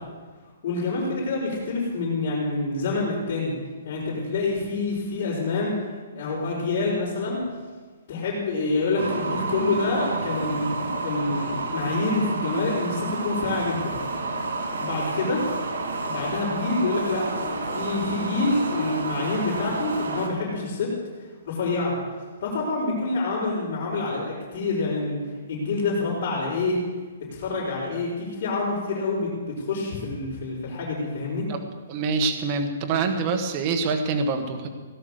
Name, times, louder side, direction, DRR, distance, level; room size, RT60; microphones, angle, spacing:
voice 1, 0.6-3.5 3.8-5.8 6.2-7.4 8.1-10.7 11.0-14.0 14.8-15.4 16.0-20.9 21.4-21.9 22.4-25.2 25.5-26.8 27.3-31.5, left 3 dB, 45° left, -9 dB, 5.2 m, -27 dB
sound 1, 9.0-20.3, right 3 dB, 90° right, 3.7 m, -30 dB
voice 2, 31.9-34.7, right 4 dB, 30° right, 5 dB, 1.4 m, -25 dB
17.5 x 11.0 x 6.6 m, 1.4 s
hypercardioid pair, 165°, 0 cm